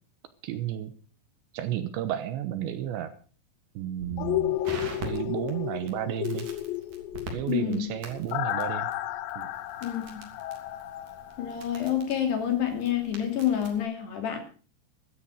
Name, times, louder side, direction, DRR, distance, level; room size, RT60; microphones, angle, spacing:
voice 1, 0.4-0.9 1.5-3.1 3.8-4.6 5.0-6.5 7.3-8.9 9.4-9.5, right 11 dB, 75° right, 11 dB, 3.0 m, -32 dB
Crackle, 4.0-13.8, right 2 dB, 45° right, 4.2 m, -44 dB
sound 1, 4.2-12.1 12.4-12.5, left 14 dB, 75° left, 2.7 m, -33 dB
voice 2, 7.5-7.9 9.8-10.3 11.4-14.4, left 10 dB, 60° left, 5 dB, 4.6 m, -28 dB
14.0 x 13.0 x 6.4 m, 0.40 s
omnidirectional pair, 5.8 m